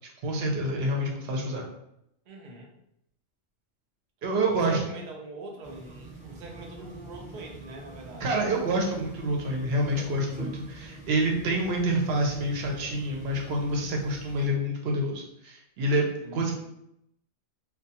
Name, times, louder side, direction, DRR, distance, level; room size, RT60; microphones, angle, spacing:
voice 1, 0.2-1.7 4.2-4.8 8.2-16.1 16.3-16.5, right 1 dB, 60° right, 0 dB, 0.7 m, -27 dB
voice 2, 2.3-2.8 4.5-8.4 16.2-16.5, right 2 dB, 90° right, 0 dB, 0.4 m, -43 dB
sound 1, 5.6-14.5, right 2 dB, 10° right, 0.3 m, -44 dB
2.2 x 2.2 x 2.7 m, 0.78 s
omnidirectional pair, 1.3 m